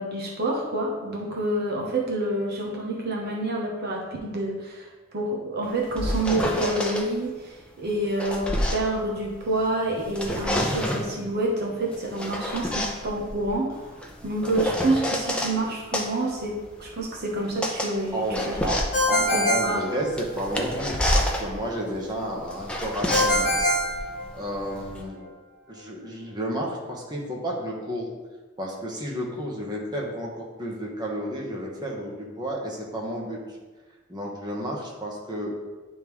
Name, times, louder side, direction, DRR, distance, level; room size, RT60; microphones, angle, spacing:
voice 1, 0.0-4.9 5.1-13.9 14.2-18.6 19.1-19.8 20.7-20.8, right 1 dB, 55° right, -2 dB, 0.9 m, -28 dB
sound 1, 5.7-7.1 7.9-9.7 10.0-11.1 11.9-15.6 15.9-25.0, equal, 5° left, 0.6 m, -29 dB
voice 2, 18.1-18.8 19.1-23.7 24.3-25.3 25.7-28.1 28.6-33.4 34.1-35.5, equal, 20° right, -3 dB, 1.2 m, -31 dB
Ringtone, 18.9-20.6 23.1-24.8, equal, 40° left, 1.3 m, -24 dB
10.5 x 3.6 x 3.1 m, 1.3 s
head